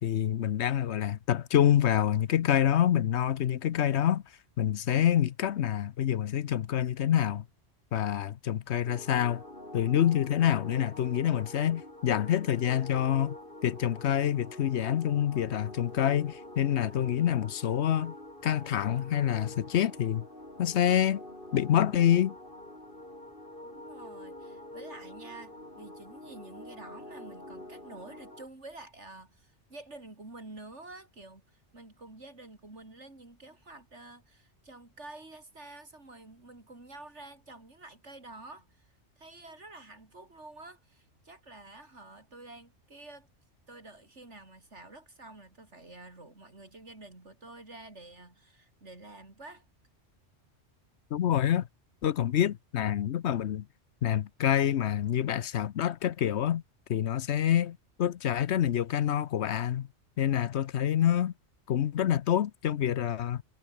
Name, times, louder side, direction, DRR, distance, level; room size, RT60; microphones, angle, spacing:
voice 1, 0.0-4.2 4.6-7.4 7.9-9.4 9.7-13.4 13.6-18.1 18.4-20.2 20.6-21.2 21.5-22.3 51.1-51.7 52.0-53.6 54.0-56.6 56.9-59.9 60.2-61.3 61.7-63.4, left 10 dB, 70° left, 1.0 m, -27 dB
sound 1, 8.8-28.5, left 1 dB, 45° left, 7.8 m, -46 dB
voice 2, 23.6-38.9 39.2-43.3 43.7-49.6, right 2 dB, 75° right, 4.9 m, -49 dB
omnidirectional pair, 1.2 m